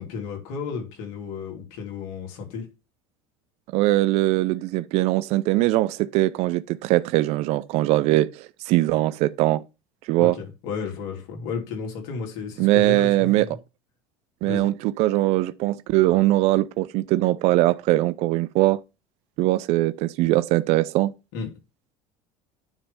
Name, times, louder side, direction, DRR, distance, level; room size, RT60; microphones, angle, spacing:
voice 1, 0.0-2.7 10.2-13.6 14.4-14.7 21.3-21.5, left 5 dB, 75° left, 2.8 m, -33 dB
voice 2, 3.7-9.6 10.1-10.3 12.6-13.6 14.4-18.8 19.4-21.1, right 17 dB, 60° right, 0.4 m, -21 dB
9.7 x 3.3 x 5.5 m
supercardioid pair, 100°, 12 cm